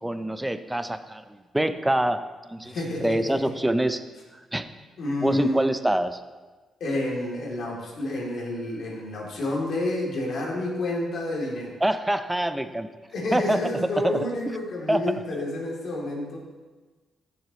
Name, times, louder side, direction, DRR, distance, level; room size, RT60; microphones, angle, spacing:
voice 1, 0.0-2.8 3.0-4.0 4.3-4.7 5.2-6.2 11.8-12.9 13.3-13.6 14.0-14.3 14.9-15.0, right 1 dB, 10° right, 10 dB, 0.7 m, -25 dB
voice 2, 2.6-3.5 5.0-5.6 6.8-11.8 13.1-16.4, left 1 dB, 65° left, -3 dB, 3.2 m, -29 dB
15.0 x 7.1 x 3.2 m, 1.3 s
cardioid pair, 70°, 0 cm